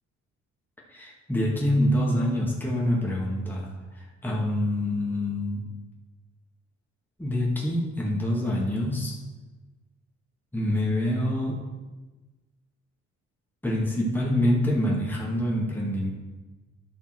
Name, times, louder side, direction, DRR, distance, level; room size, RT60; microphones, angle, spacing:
voice 1, 0.9-5.7 7.2-9.1 10.5-11.6 13.6-16.1, left 1 dB, 5° left, -4 dB, 2.2 m, -26 dB
11.5 x 5.6 x 4.6 m, 1.2 s
cardioid pair, 90°, 30 cm